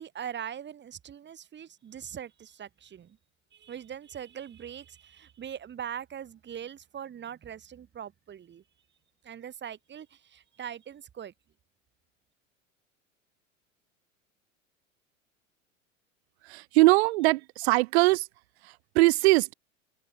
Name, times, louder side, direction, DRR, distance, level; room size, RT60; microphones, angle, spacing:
voice 1, 0.0-3.2 3.5-8.6 9.2-11.3, right 9 dB, 30° right, 5.9 m, -41 dB
voice 2, 16.4-18.3 18.6-19.5, right 22 dB, 55° right, 2.2 m, -22 dB
open air
figure-of-eight pair, 80°, 39 cm